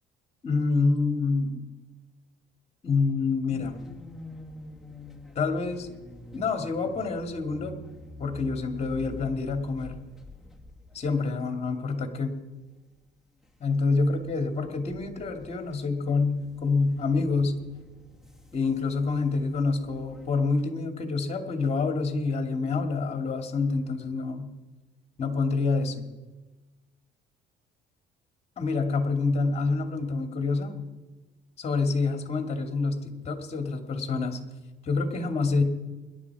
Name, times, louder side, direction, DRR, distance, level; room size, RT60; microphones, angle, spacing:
voice 1, 0.4-1.6 2.8-3.8 5.3-5.9 6.3-7.8 8.2-10.0 10.9-12.3 13.6-17.6 18.5-24.5 25.2-26.1 28.6-30.8 31.6-34.4 34.8-35.6, left 4 dB, 40° left, 5 dB, 2.5 m, -27 dB
sound 1, 3.5-11.7 12.1-12.3 13.0-13.6 13.9-20.4, left 2 dB, ahead, 1.9 m, -48 dB
25.5 x 11.0 x 4.9 m, 1.2 s
cardioid pair, 110°, 17 cm